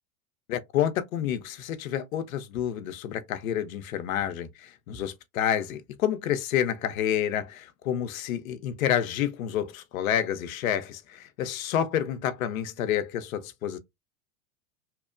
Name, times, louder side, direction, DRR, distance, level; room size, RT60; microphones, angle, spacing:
voice 1, 0.5-13.8, left 10 dB, 80° left, 0.6 m, -29 dB
2.9 x 2.1 x 2.4 m
hypercardioid pair, 95°, 41 cm